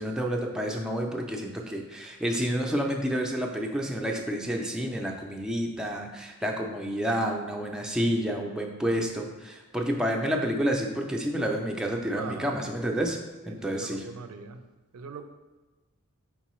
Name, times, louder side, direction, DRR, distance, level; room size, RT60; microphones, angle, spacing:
voice 1, 0.0-13.2 13.5-14.0, equal, 5° right, 0 dB, 0.3 m, -29 dB
voice 2, 12.2-12.6 13.4-14.6 14.9-15.2, right 5 dB, 90° right, 8 dB, 0.4 m, -40 dB
4.6 x 3.7 x 3.0 m, 1.2 s
head